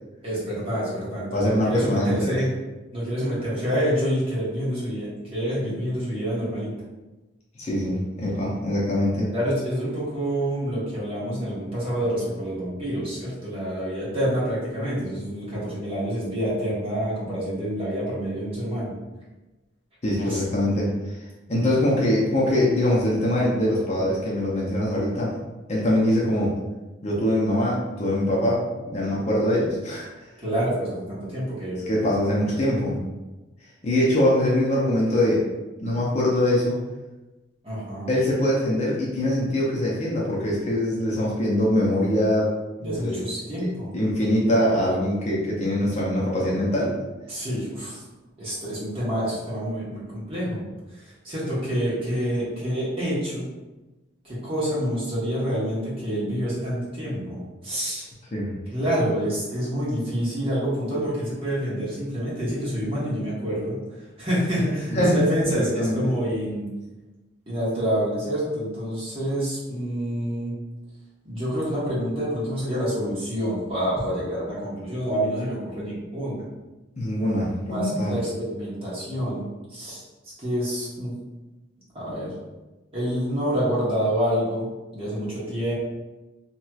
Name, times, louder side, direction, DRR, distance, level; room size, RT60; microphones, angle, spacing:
voice 1, 0.2-2.5 2.9-6.7 9.3-18.9 20.2-20.4 30.4-31.8 37.6-38.1 42.8-43.9 47.3-48.0 48.4-50.6 51.0-53.5 54.2-58.0 58.7-63.8 64.2-66.7 67.5-70.5 71.2-76.4 77.7-79.4 79.7-80.0 80.4-81.1 81.9-82.3 82.9-84.7 84.9-85.7, equal, 30° right, -8 dB, 1.1 m, -27 dB
voice 2, 1.3-2.4 7.6-9.3 20.0-21.2 21.5-25.3 25.7-26.6 27.0-30.1 31.9-33.0 33.8-35.4 35.8-36.8 38.1-42.5 42.8-43.2 43.6-43.7 43.9-46.9 58.3-58.5 64.9-65.2 65.6-66.0 77.0-78.1, left 1 dB, 35° left, -5 dB, 0.6 m, -23 dB
3.0 x 2.9 x 2.3 m, 1.1 s
head